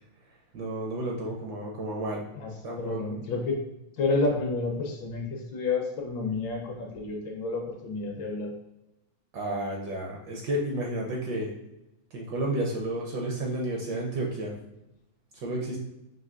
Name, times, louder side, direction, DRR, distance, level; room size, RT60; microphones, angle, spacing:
voice 1, 0.5-2.2 2.6-3.2 9.3-11.5 12.1-14.5 15.4-15.8, right 1 dB, 70° right, -1 dB, 1.1 m, -31 dB
voice 2, 2.8-3.6 4.0-8.5, left 3 dB, 70° left, 1 dB, 1.2 m, -30 dB
5.6 x 2.9 x 2.4 m, 0.89 s
omnidirectional pair, 2.3 m